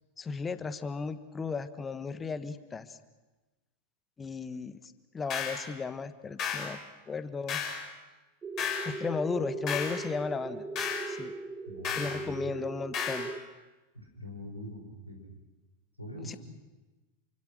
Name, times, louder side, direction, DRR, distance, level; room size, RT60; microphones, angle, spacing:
voice 1, 0.2-3.0 4.2-4.8 5.1-6.8 7.1-7.6 8.8-10.6 11.1-11.3 12.0-13.3 16.3-16.4, left 5 dB, 15° left, 13 dB, 1.3 m, -35 dB
sound 1, 5.3-5.6 6.4-6.7 7.5-7.8 8.6-8.9 9.7-10.0 10.8-11.1 11.8-12.2 12.9-13.3, left 7 dB, 35° left, 6.0 m, -33 dB
sound 2, 8.4-13.4, right 3 dB, 20° right, 1.0 m, -39 dB
voice 2, 11.7-12.5 13.9-15.3 16.0-16.4, left 1 dB, 85° left, 2 dB, 5.7 m, -43 dB
28.0 x 25.5 x 6.4 m, 1.2 s
figure-of-eight pair, 90°, 0 cm